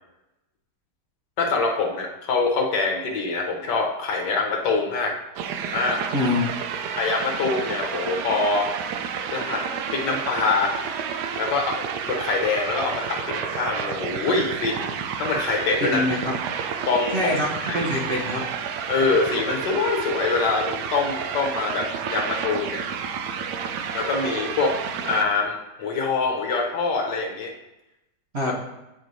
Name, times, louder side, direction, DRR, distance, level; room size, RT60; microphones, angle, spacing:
voice 1, 1.4-5.1 5.7-6.1 7.0-8.7 9.3-9.7 9.9-10.7 11.4-14.9 15.2-16.0 16.9-17.3 17.6-17.9 18.9-22.8 23.9-24.8 25.0-27.5, left 4 dB, 75° left, 1 dB, 1.5 m, -24 dB
sound 1, 5.4-25.3, right 7 dB, 75° right, 1.1 m, -30 dB
voice 2, 6.1-6.5 15.8-16.3 17.1-17.5 17.7-18.5 28.3-28.5, left 2 dB, 45° right, -4 dB, 0.9 m, -24 dB
8.7 x 4.5 x 2.6 m, 0.95 s
omnidirectional pair, 1.9 m